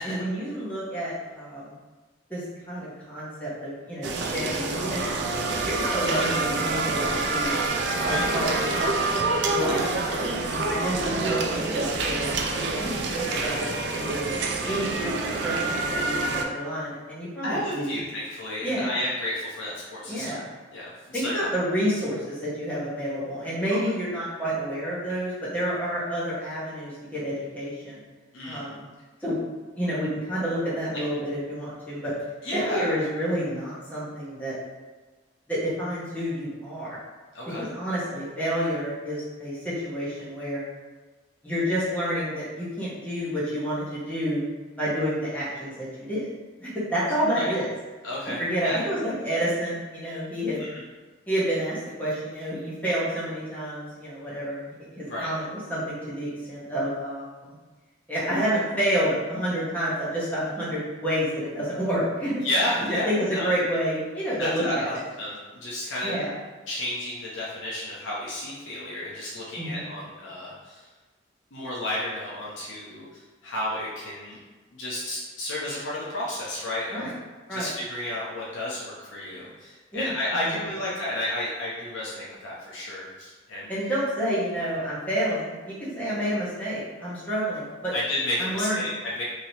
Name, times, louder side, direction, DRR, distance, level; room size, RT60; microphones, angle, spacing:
voice 1, 0.0-1.7 2.3-2.4 2.7-5.1 5.6-7.7 8.1-8.6 9.5-9.8 10.3-14.4 14.6-18.0 18.6-18.9 20.1-20.4 21.1-28.0 28.4-28.8 29.2-29.4 29.8-32.1 32.5-34.5 35.5-37.0 37.6-40.6 41.4-44.4 44.8-46.3 46.6-47.7 48.4-50.6 51.3-55.4 55.7-57.5 58.1-62.4 62.9-64.9 66.0-66.3 69.6-69.9 76.9-77.1 77.5-77.7 79.9-80.1 80.5-80.6 83.7-87.9 88.4-88.8, equal, 10° left, -9 dB, 0.8 m, -29 dB
sound 1, 4.0-16.4, right 3 dB, 65° right, 0.3 m, -27 dB
voice 2, 7.9-8.3 14.6-14.9 17.4-20.4 20.7-21.4 28.3-28.7 32.4-32.9 37.3-37.6 47.3-47.5 48.0-48.8 50.6-50.8 55.1-55.3 62.4-63.5 64.4-66.1 66.7-70.9 71.5-74.4 74.8-77.1 77.5-83.7 87.9-89.2, left 1 dB, 85° left, -6 dB, 0.7 m, -32 dB
3.0 x 2.8 x 2.7 m, 1.3 s
head